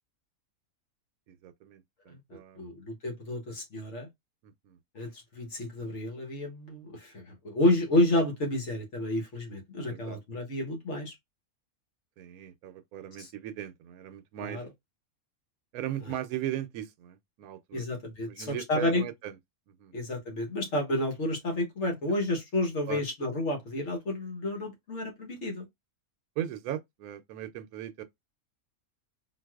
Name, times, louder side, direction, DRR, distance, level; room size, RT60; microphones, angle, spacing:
voice 1, 1.3-2.7 4.4-4.8 9.9-10.2 12.2-14.6 15.7-17.9 18.3-19.3 19.7-19.9 22.9-23.0 26.4-28.0, right 11 dB, 85° right, 1.0 m, -38 dB
voice 2, 2.1-4.1 4.9-11.2 13.2-13.3 14.4-14.7 17.7-19.0 19.9-25.7, left 1 dB, 55° left, 1.3 m, -30 dB
3.9 x 2.5 x 2.3 m
omnidirectional pair, 1.5 m